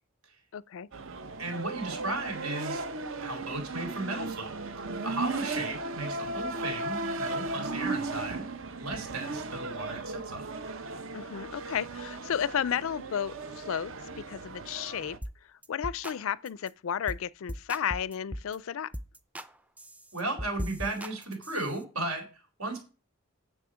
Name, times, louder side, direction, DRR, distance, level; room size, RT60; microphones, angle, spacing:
voice 1, 0.5-0.9 11.1-15.2 15.7-18.9, left 8 dB, 65° left, 0.4 m, -33 dB
sound 1, 0.9-15.2, right 3 dB, 60° right, 0.8 m, -36 dB
voice 2, 1.4-2.8 3.2-4.5 5.0-8.4 8.8-10.5 20.1-22.8, right 2 dB, 80° right, 4.2 m, -35 dB
sound 2, 15.2-15.4 15.6-16.2 16.5-16.7 17.1-17.2 17.5-18.6 18.9-19.5 19.8-21.8, equal, 5° right, 0.4 m, -39 dB
9.2 x 7.4 x 5.0 m
head